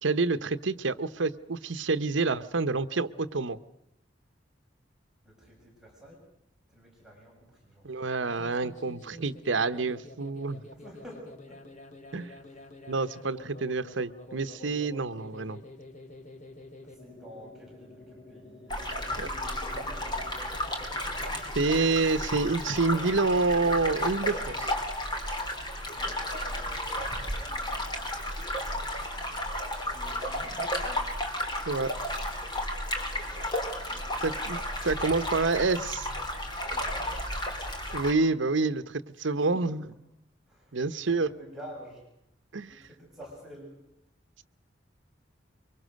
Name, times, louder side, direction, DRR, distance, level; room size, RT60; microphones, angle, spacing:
voice 1, 0.0-3.6 7.8-10.6 12.1-12.4 12.9-15.6 19.2-19.3 21.5-24.7 31.7-31.9 34.2-34.6 34.8-36.1 37.9-39.8 40.7-41.3 42.5-42.7, right 3 dB, 80° right, 12 dB, 0.9 m, -28 dB
voice 2, 5.2-6.3 6.7-7.8 10.7-11.6 12.2-12.9 16.8-20.2 25.9-28.0 29.8-31.2 33.7-35.1 36.6-37.2 39.2-39.7 40.4-42.1 42.7-43.8, equal, 5° right, -4 dB, 7.1 m, -50 dB
sound 1, 8.1-24.7, left 1 dB, 40° left, 2.7 m, -49 dB
sound 2, 18.7-38.1, left 1 dB, 25° left, 3.5 m, -33 dB
24.0 x 23.5 x 6.5 m, 0.78 s
head